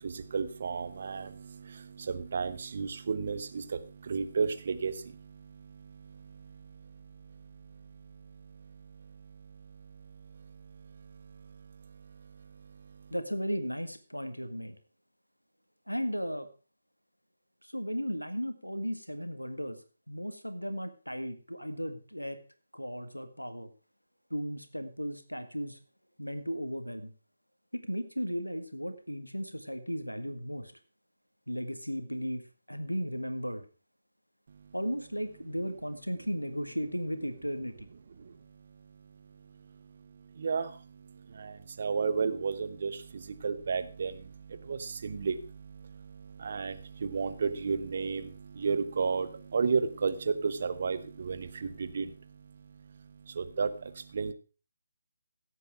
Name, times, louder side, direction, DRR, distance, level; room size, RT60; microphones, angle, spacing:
voice 1, 0.0-13.1 34.5-34.7 38.2-54.3, right 5 dB, 45° right, 12 dB, 1.1 m, -35 dB
voice 2, 13.1-14.8 15.9-16.5 17.6-19.8 20.1-22.4 22.7-23.7 24.3-25.8 26.2-27.1 27.7-30.7 31.5-33.7 34.7-37.9, equal, 90° left, 10 dB, 1.8 m, -35 dB
16.0 x 8.4 x 4.6 m, 0.35 s
figure-of-eight pair, 150°, 0 cm